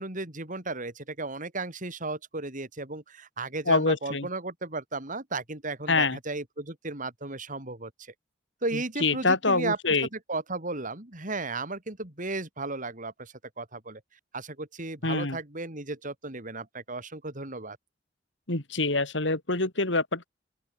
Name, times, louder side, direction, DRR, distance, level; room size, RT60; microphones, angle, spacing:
voice 1, 0.0-8.1 8.6-14.0 14.3-17.8, right 3 dB, 45° right, 4.9 m, -35 dB
voice 2, 3.7-4.3 5.9-6.2 9.0-10.1 15.0-15.4 18.5-20.3, left 3 dB, 75° left, 3.7 m, -25 dB
open air
head